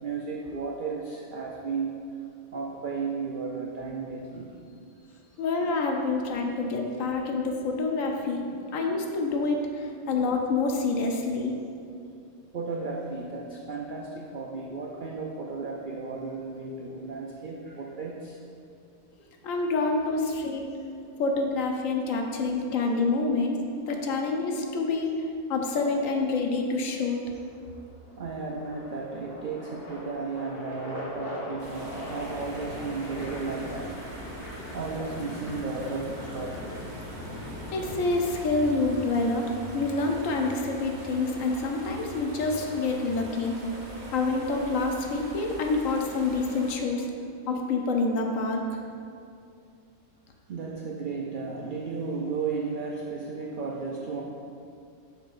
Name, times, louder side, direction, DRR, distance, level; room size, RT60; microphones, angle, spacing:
voice 1, 0.0-2.0 2.5-4.5 8.5-8.6 12.5-18.4 22.8-23.1 28.2-33.9 34.7-36.6 44.0-44.1 50.5-54.2, right 4 dB, 85° right, -1 dB, 0.4 m, -34 dB
voice 2, 5.4-8.4 8.7-11.6 19.4-20.7 21.2-25.1 25.5-27.2 35.0-35.1 37.7-43.5 44.1-47.1 47.5-48.6, left 3 dB, 70° left, 2 dB, 1.0 m, -27 dB
sound 1, 21.0-22.1 24.0-25.2 26.2-26.6 27.0-38.9, left 1 dB, 45° left, 1.3 m, -40 dB
sound 2, 31.6-46.7, right 1 dB, 40° right, 0.9 m, -42 dB
6.7 x 5.9 x 2.5 m, 2.4 s
omnidirectional pair, 1.5 m